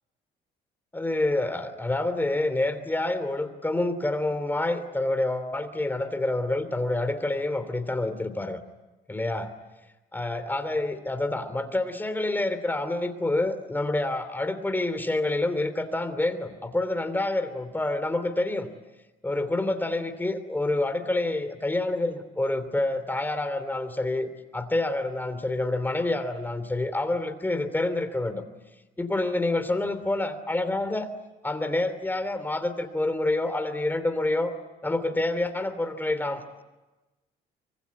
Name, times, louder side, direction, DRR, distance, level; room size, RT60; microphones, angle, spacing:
voice 1, 0.9-8.6 9.1-9.5 10.1-18.7 19.2-28.4 29.0-31.1 31.4-34.5 34.8-36.6, left 2 dB, 10° left, 11 dB, 3.0 m, -27 dB
25.0 x 24.5 x 9.6 m, 1.1 s
cardioid pair, 110°, 17 cm